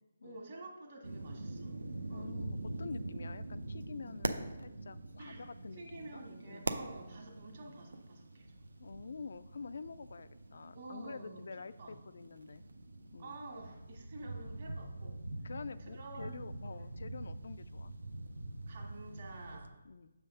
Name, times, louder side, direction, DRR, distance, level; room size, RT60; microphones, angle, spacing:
voice 1, 0.2-1.8 2.1-2.3 5.2-8.6 10.7-11.5 11.8-12.0 13.2-15.2 15.8-16.5 16.8-16.9 18.7-19.7, right 2 dB, 50° right, 0 dB, 1.6 m, -50 dB
sound 1, 1.0-19.7, right 2 dB, 85° right, 0.5 m, -44 dB
voice 2, 2.1-6.2 6.5-6.7 8.8-12.6 13.1-13.3 15.4-17.9 19.8-20.1, left 4 dB, 65° left, 13 dB, 0.3 m, -47 dB
6.8 x 3.4 x 5.6 m, 1.0 s
hypercardioid pair, 160°, 0 cm